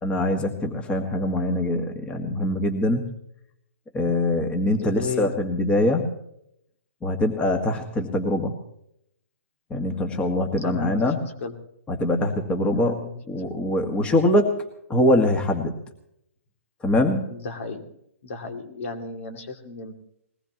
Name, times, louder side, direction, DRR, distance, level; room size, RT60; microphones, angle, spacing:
voice 1, 0.0-3.1 3.9-6.1 7.0-8.6 9.7-11.2 11.9-13.0 13.3-14.5 14.9-15.8 16.8-17.2, left 1 dB, 15° left, 4 dB, 1.7 m, -23 dB
voice 2, 4.8-5.3 10.6-11.5 12.7-13.4 17.3-17.9 18.2-19.9, left 4 dB, 65° left, 5 dB, 2.6 m, -34 dB
21.0 x 19.0 x 3.0 m, 0.76 s
hypercardioid pair, 130°, 8 cm